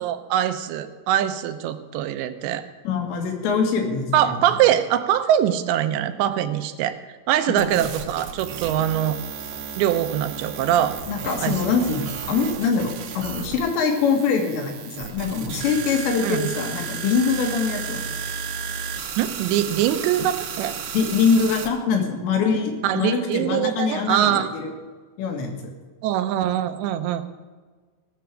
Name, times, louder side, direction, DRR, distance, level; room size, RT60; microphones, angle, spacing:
voice 1, 0.0-2.6 4.1-7.0 7.3-9.2 9.8-11.0 11.4-11.7 16.2-16.5 19.2-20.8 22.8-24.5 26.0-27.2, right 11 dB, 85° right, 9 dB, 3.0 m, -23 dB
voice 2, 2.9-4.4 7.5-7.6 11.1-18.1 20.9-24.7 25.2-25.5, left 5 dB, 85° left, 2 dB, 3.9 m, -23 dB
sound 1, 7.6-21.7, right 6 dB, 70° right, 2.9 m, -33 dB
17.5 x 6.9 x 6.3 m, 1.4 s
omnidirectional pair, 5.0 m